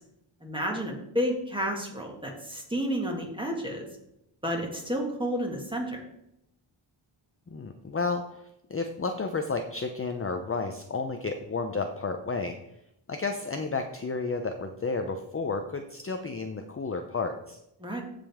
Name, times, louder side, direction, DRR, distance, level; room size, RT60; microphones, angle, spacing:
voice 1, 0.4-3.9 4.4-6.0 17.8-18.0, equal, 10° right, 0 dB, 2.0 m, -31 dB
voice 2, 7.5-8.4 8.7-12.6 13.1-17.6, left 4 dB, 25° left, 5 dB, 0.6 m, -32 dB
15.0 x 5.2 x 3.6 m, 0.80 s
wide cardioid pair, 130°, 50 cm